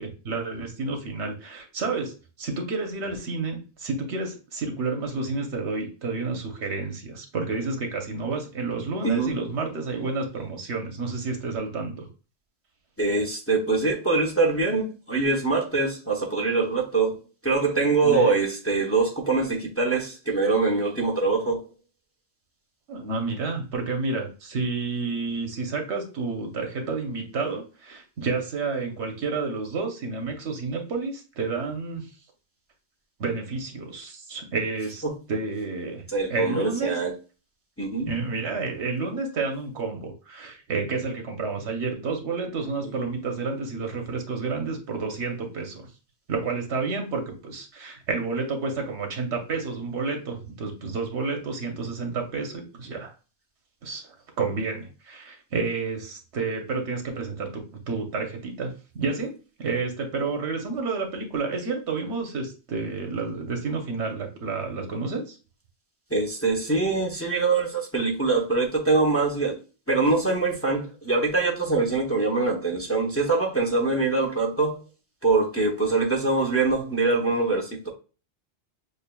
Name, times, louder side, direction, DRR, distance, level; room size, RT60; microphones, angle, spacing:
voice 1, 0.0-12.1 18.0-18.3 22.9-32.1 33.2-36.0 36.3-37.0 38.1-45.9 46.3-53.1 53.8-65.4, right 4 dB, 85° right, 1.2 m, -30 dB
voice 2, 9.0-9.3 13.0-17.1 17.4-21.6 35.0-35.1 36.1-37.1 37.8-38.1 66.1-69.6 69.9-74.8 75.2-77.9, right 3 dB, 15° left, 0.7 m, -23 dB
6.6 x 2.4 x 2.2 m
omnidirectional pair, 1.1 m